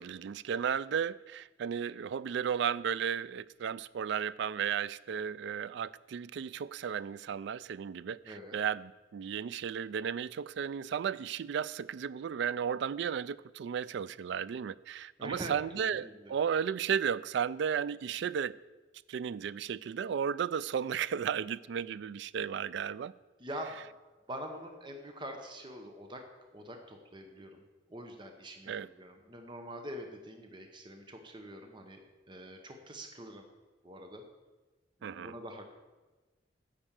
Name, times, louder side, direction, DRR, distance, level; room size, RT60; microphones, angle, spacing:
voice 1, 0.0-18.5 19.1-23.1 28.7-28.9 35.0-35.3, right 7 dB, 65° right, 0.3 m, -34 dB
voice 2, 8.2-8.6 15.2-16.4 23.4-23.9 24.3-27.6 27.9-32.0 32.3-33.4 33.8-34.2 35.0-35.7, equal, 25° right, 0.9 m, -45 dB
9.9 x 5.3 x 7.3 m
head